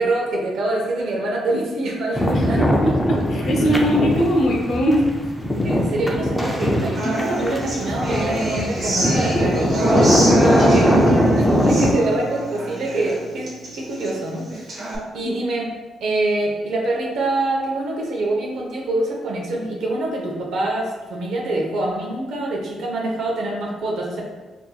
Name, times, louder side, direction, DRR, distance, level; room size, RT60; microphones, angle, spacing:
voice 1, 0.0-2.6 5.6-10.1 10.7-14.8 15.1-15.7 16.0-24.2, right 2 dB, 65° right, -1 dB, 0.8 m, -25 dB
sound 1, 2.2-11.9, equal, 5° left, 0.4 m, -20 dB
voice 2, 2.3-5.1 15.2-15.4, equal, 50° left, 0 dB, 0.6 m, -21 dB
Human voice / Acoustic guitar, 7.0-15.0, right 1 dB, 40° right, 0.9 m, -25 dB
4.3 x 2.6 x 2.3 m, 1.2 s
cardioid pair, 145°, 0 cm